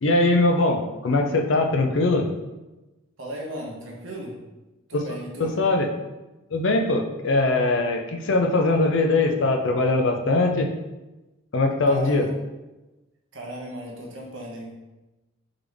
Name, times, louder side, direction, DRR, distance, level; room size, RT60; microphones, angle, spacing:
voice 1, 0.0-2.3 4.9-5.0 5.4-5.9 6.5-10.7 11.5-12.3, left 2 dB, 60° left, 3 dB, 0.5 m, -21 dB
voice 2, 3.2-4.4 4.9-5.5 11.9-12.3 13.3-14.8, equal, 60° right, -2 dB, 1.0 m, -36 dB
3.8 x 3.4 x 3.4 m, 1.1 s
head